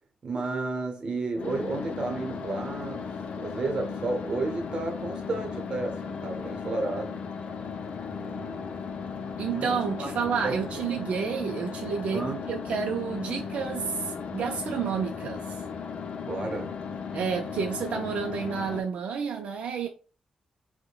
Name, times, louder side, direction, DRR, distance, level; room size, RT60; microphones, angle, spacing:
voice 1, 0.2-7.2 8.1-8.7 9.5-10.1 10.4-10.5 12.1-12.5 16.2-16.8, right 3 dB, 45° right, 0.8 m, -32 dB
sound 1, 1.3-18.8, left 6 dB, 70° left, 0.4 m, -36 dB
voice 2, 9.4-15.6 17.1-19.9, right 6 dB, 80° right, 0.4 m, -30 dB
4.7 x 2.1 x 2.3 m
wide cardioid pair, 150°, 2 cm